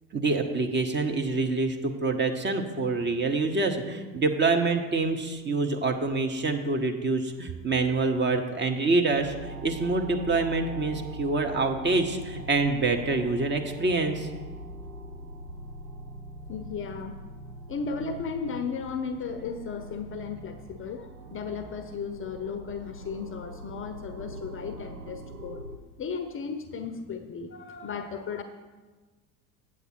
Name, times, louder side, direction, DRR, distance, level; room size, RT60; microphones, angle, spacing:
voice 1, 0.1-14.3, right 3 dB, 25° right, 5 dB, 0.8 m, -26 dB
sound 1, 9.1-25.8, right 1 dB, 85° right, 0.8 m, -42 dB
voice 2, 16.5-17.2 17.7-25.7 26.0-28.4, left 5 dB, 30° left, 8 dB, 0.6 m, -35 dB
8.2 x 7.3 x 4.3 m, 1.3 s
hypercardioid pair, 70°, 46 cm